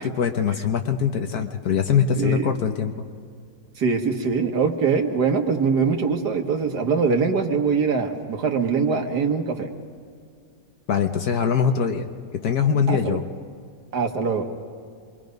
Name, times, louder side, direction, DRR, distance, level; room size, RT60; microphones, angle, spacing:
voice 1, 0.2-2.9 10.9-12.1 12.4-13.2, left 7 dB, 65° left, 6 dB, 1.4 m, -22 dB
voice 2, 2.2-2.5 3.8-9.7 12.9-13.2 13.9-14.5, right 5 dB, 65° right, 4 dB, 2.0 m, -23 dB
26.5 x 23.0 x 5.3 m, 2.2 s
omnidirectional pair, 1.9 m